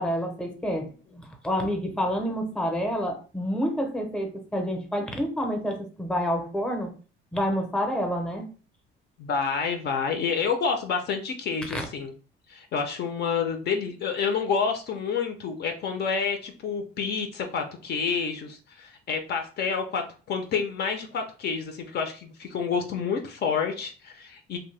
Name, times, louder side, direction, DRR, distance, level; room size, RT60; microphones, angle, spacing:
voice 1, 0.0-6.9 7.3-8.5 11.7-11.8, equal, 5° left, 3 dB, 0.6 m, -28 dB
voice 2, 9.2-12.1 12.5-24.6, left 5 dB, 50° left, 5 dB, 0.5 m, -29 dB
2.7 x 2.1 x 3.1 m, 0.37 s
cardioid pair, 125°, 21 cm